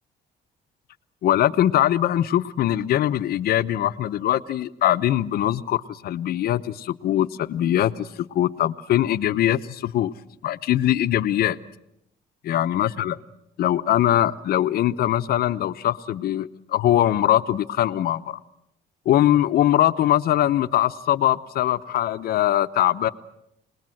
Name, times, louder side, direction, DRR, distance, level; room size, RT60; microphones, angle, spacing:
voice 1, 1.2-10.1 10.4-11.6 12.4-13.2 13.6-18.4 19.1-23.1, left 12 dB, 65° left, 12 dB, 1.0 m, -22 dB
27.5 x 20.0 x 7.8 m, 0.80 s
cardioid pair, 110°, 17 cm